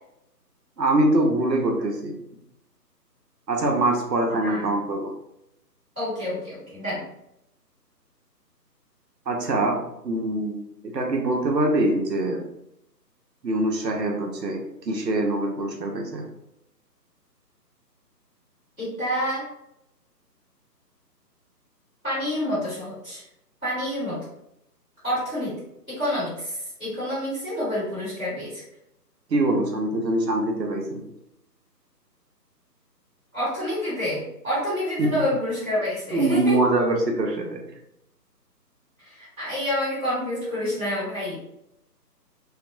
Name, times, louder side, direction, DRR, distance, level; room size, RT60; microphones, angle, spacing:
voice 1, 0.8-2.2 3.5-5.1 9.3-9.8 10.0-10.5 10.8-12.4 13.4-16.2 29.3-31.1 35.0-35.1 36.1-37.6, right 2 dB, 75° right, 1 dB, 0.8 m, -23 dB
voice 2, 5.9-7.0 18.8-19.5 22.0-23.2 23.6-24.2 25.0-25.6 25.9-28.6 33.3-36.6 39.0-41.4, left 1 dB, 5° left, -19 dB, 0.8 m, -28 dB
2.8 x 2.1 x 2.5 m, 0.80 s
figure-of-eight pair, 150°, 50 cm